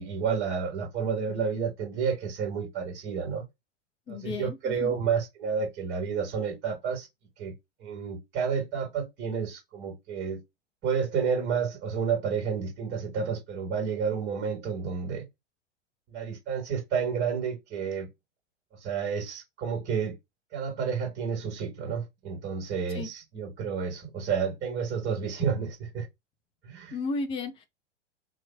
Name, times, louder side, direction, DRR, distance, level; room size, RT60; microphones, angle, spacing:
voice 1, 0.0-3.5 4.1-7.1 7.4-7.5 7.8-10.4 10.8-15.2 16.1-18.1 18.7-20.2 20.5-26.1 26.6-27.0, right 6 dB, 30° right, 1.7 m, -30 dB
voice 2, 4.1-4.9 22.9-23.1 26.9-27.7, left 3 dB, 15° left, 0.5 m, -34 dB
3.0 x 2.4 x 3.4 m
figure-of-eight pair, 95°, 36 cm